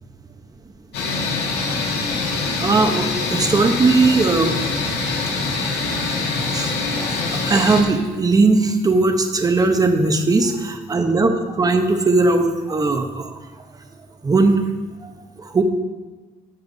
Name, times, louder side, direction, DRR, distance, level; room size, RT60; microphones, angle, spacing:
sound 1, 0.9-7.8, left 3 dB, 75° left, 1.8 m, -24 dB
voice 1, 2.6-4.6 6.4-6.7 7.0-13.3 14.2-14.6 15.0-15.1 15.4-15.6, right 3 dB, 20° right, 6 dB, 0.9 m, -18 dB
10.5 x 6.8 x 4.0 m, 1.3 s
cardioid pair, 110°, 17 cm